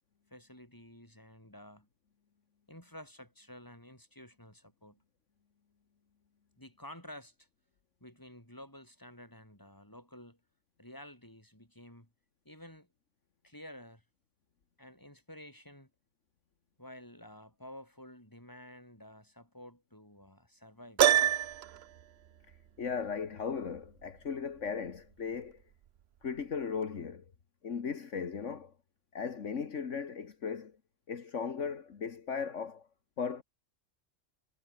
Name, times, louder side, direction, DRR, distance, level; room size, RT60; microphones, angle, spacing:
voice 1, 0.3-1.9 2.7-5.0 6.6-7.5 8.0-10.4 10.8-12.1 12.4-12.9 13.4-14.0 14.8-15.9 16.8-21.5, left 1 dB, 15° left, 6.2 m, -51 dB
Piano, 21.0-21.8, right 11 dB, 60° right, 0.9 m, -25 dB
voice 2, 22.8-25.6 26.2-27.3 27.6-28.7 29.1-30.8 31.1-32.9 33.2-33.4, left 6 dB, 70° left, 1.8 m, -37 dB
omnidirectional pair, 1.3 m